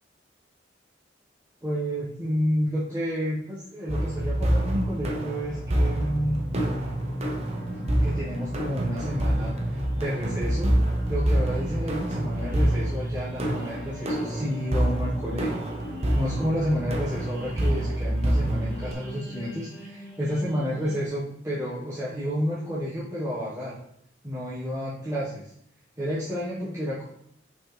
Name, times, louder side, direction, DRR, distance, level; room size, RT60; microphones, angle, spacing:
voice 1, 1.6-6.4 8.0-10.8 11.1-15.6 16.1-23.8 24.2-25.5 26.0-27.0, equal, 15° right, -10 dB, 1.5 m, -30 dB
sound 1, 3.9-18.9, right 1 dB, 35° right, 0.9 m, -27 dB
sound 2, 4.3-21.1, left 1 dB, ahead, 2.4 m, -40 dB
6.1 x 5.8 x 3.4 m, 0.69 s
head